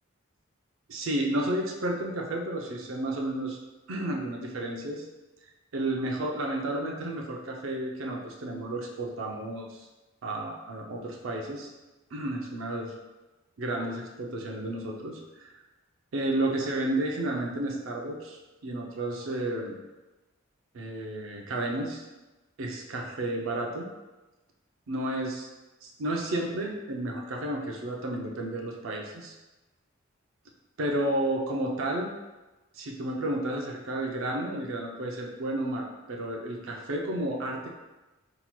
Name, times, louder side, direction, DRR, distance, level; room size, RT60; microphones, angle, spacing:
voice 1, 0.9-3.6 3.9-5.1 5.7-9.9 10.2-11.7 12.1-12.9 13.6-15.5 16.1-19.8 20.7-22.0 22.6-23.9 24.9-25.5 25.8-29.3 30.8-32.1 32.7-37.8, right 1 dB, 75° right, 0 dB, 0.5 m, -32 dB
5.7 x 2.9 x 2.2 m, 1.1 s
head